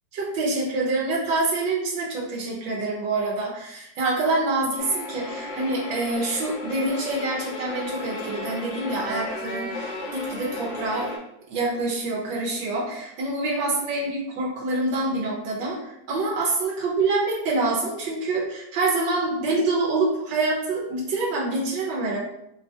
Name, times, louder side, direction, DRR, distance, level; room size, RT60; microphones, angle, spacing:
voice 1, 0.1-11.1 11.5-22.2, right 2 dB, 90° right, -4 dB, 1.7 m, -26 dB
sound 1, 4.8-11.2, left 2 dB, 85° left, 1.8 m, -34 dB
4.8 x 2.8 x 3.4 m, 0.82 s
omnidirectional pair, 1.9 m